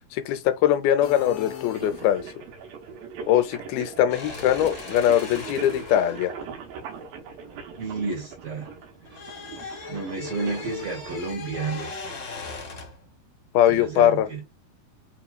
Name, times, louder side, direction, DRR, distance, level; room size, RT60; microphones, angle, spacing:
voice 1, 0.1-2.2 3.3-6.3 13.5-14.3, left 11 dB, 85° left, 2.6 m, -21 dB
sound 1, 1.0-2.6, left 10 dB, 70° left, 2.3 m, -39 dB
sound 2, 1.7-11.2, right 6 dB, 75° right, 2.6 m, -41 dB
sound 3, 4.1-8.3 8.6-13.0, left 4 dB, 45° left, 1.5 m, -39 dB
voice 2, 7.8-8.7 9.9-11.9 13.7-14.4, right 4 dB, 50° right, 2.0 m, -31 dB
6.0 x 3.0 x 2.3 m
omnidirectional pair, 4.3 m